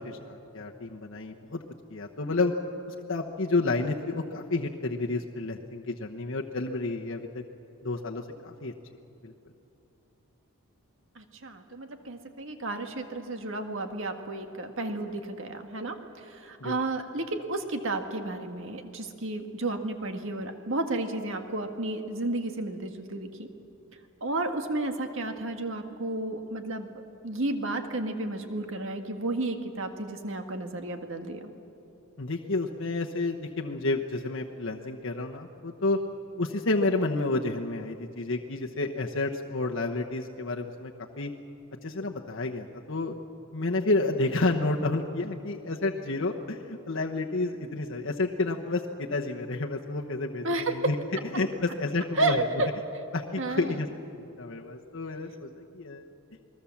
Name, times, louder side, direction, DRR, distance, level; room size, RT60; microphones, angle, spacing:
voice 1, 0.0-1.6 1.9-2.5 2.9-7.4 7.8-8.7 9.2-9.3 16.6-16.8 32.2-36.0 36.4-40.9 41.2-41.3 41.8-43.1 43.5-51.0 51.3-52.4 53.1-53.9 54.4-56.1, left 2 dB, 60° left, 0 dB, 1.1 m, -30 dB
voice 2, 11.2-23.5 24.2-26.9 27.2-31.5 50.4-50.9 52.2-52.7 53.4-53.8, right 2 dB, 60° right, 5 dB, 1.8 m, -32 dB
28.0 x 20.5 x 7.3 m, 2.8 s
head